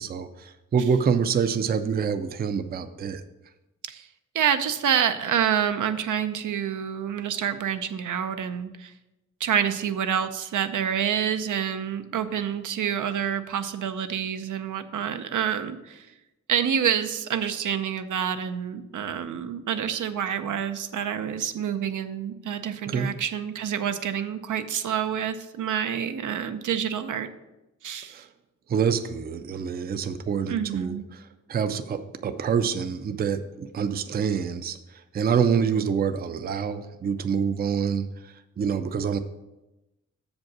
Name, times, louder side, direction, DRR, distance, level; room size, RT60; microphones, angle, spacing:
voice 1, 0.0-3.2 22.9-23.1 28.1-28.3 28.7-31.2 31.5-34.8 35.1-39.2, right 6 dB, 30° right, 11 dB, 0.4 m, -26 dB
voice 2, 4.3-8.9 9.4-16.1 16.5-27.3 27.8-28.2 30.5-31.1, right 8 dB, 85° right, 10 dB, 0.6 m, -27 dB
7.2 x 5.3 x 6.0 m, 0.99 s
wide cardioid pair, 180°, 30 cm